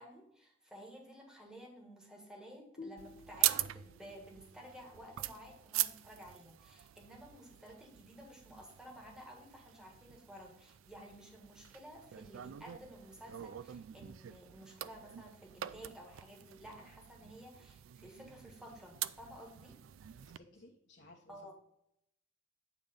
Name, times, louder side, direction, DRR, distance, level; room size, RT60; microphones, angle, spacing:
voice 1, 0.0-19.8 21.3-21.5, equal, 5° right, -1 dB, 1.6 m, -53 dB
sound 1, 2.8-6.2, left 3 dB, 45° left, 0.7 m, -54 dB
sound 2, 3.0-20.4, right 14 dB, 80° right, 0.3 m, -42 dB
voice 2, 20.2-21.5, left 1 dB, 60° left, 0 dB, 1.3 m, -59 dB
9.1 x 3.4 x 5.2 m, 0.75 s
head